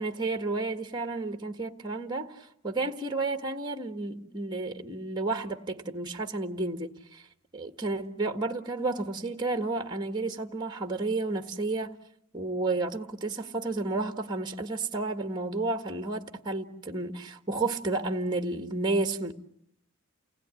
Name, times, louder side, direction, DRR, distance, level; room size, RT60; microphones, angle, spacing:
voice 1, 0.0-7.3 7.5-12.0 12.3-19.3, right 3 dB, 20° right, 1.7 m, -31 dB
29.5 x 20.0 x 9.9 m
head